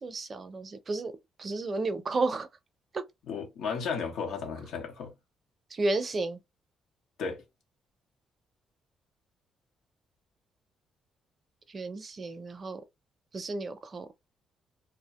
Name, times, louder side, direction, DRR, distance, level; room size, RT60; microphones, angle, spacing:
voice 1, 0.0-1.1 1.4-2.5 2.9-3.0 5.7-6.4 11.7-12.8 13.3-14.1, right 3 dB, 40° right, 0.5 m, -32 dB
voice 2, 3.3-5.1 7.2-7.4, left 5 dB, 80° left, 0.8 m, -34 dB
2.4 x 2.1 x 2.8 m
cardioid pair, 90°, 0 cm